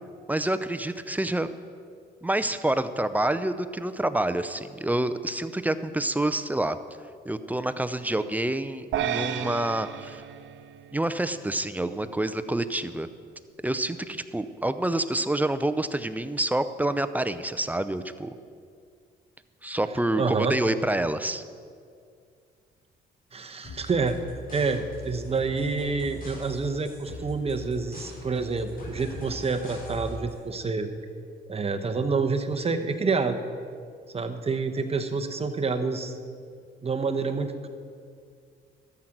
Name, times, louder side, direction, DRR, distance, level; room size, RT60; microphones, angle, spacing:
voice 1, 0.3-1.5 2.2-6.8 7.3-10.2 10.9-13.1 13.6-18.3 19.6-21.4, right 1 dB, 10° right, 11 dB, 0.5 m, -27 dB
sound 1, 8.9-11.4, right 10 dB, 75° right, 0.7 m, -32 dB
voice 2, 20.2-20.6 23.3-24.2 24.5-30.9 31.5-33.4 34.1-36.2 36.8-37.7, right 4 dB, 30° right, 6 dB, 1.0 m, -28 dB
sound 2, 23.6-30.4, left 1 dB, 45° left, 3.7 m, -41 dB
13.5 x 7.9 x 6.0 m, 2.2 s
cardioid pair, 90°, 20 cm